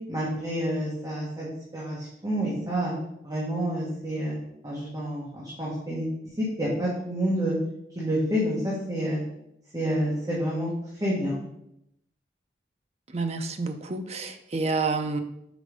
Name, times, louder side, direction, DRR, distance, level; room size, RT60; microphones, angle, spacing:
voice 1, 0.1-2.9 3.2-4.4 4.6-6.1 6.4-7.5 7.9-9.2 9.7-10.7 11.0-11.4, equal, 20° right, -7 dB, 1.3 m, -28 dB
voice 2, 13.1-15.2, right 3 dB, 35° right, 7 dB, 0.6 m, -29 dB
5.1 x 4.5 x 5.1 m, 0.80 s
head